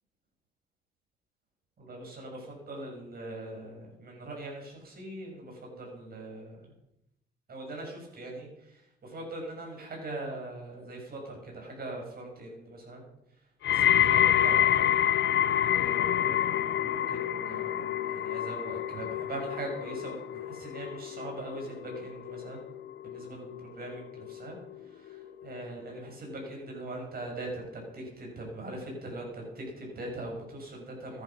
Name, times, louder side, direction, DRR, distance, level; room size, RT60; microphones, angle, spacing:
voice 1, 1.8-6.7 7.5-14.9 15.3-22.6 23.0-31.2, right 2 dB, 50° right, 0 dB, 7.0 m, -41 dB
sound 1, 13.6-24.8 25.1-25.6 26.3-26.4, left 10 dB, 70° left, 0.7 m, -28 dB
14.0 x 11.0 x 6.2 m, 0.86 s
cardioid pair, 90°, 20 cm